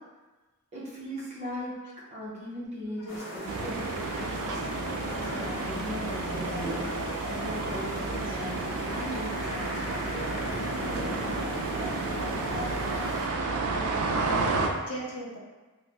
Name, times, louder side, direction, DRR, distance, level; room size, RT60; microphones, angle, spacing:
voice 1, 0.7-1.7 2.1-4.6 5.1-6.8 7.3-10.1, equal, 30° right, -7 dB, 0.7 m, -38 dB
voice 2, 1.5-1.9 3.0-3.3 12.4-12.5 13.4-14.5 14.9-15.4, left 1 dB, 90° left, -2 dB, 0.6 m, -41 dB
sound 1, 3.1-13.3, equal, 65° left, 0.8 m, -36 dB
sound 2, 3.5-14.7, right 3 dB, 75° right, 0.3 m, -32 dB
3.1 x 2.1 x 2.9 m, 1.2 s
head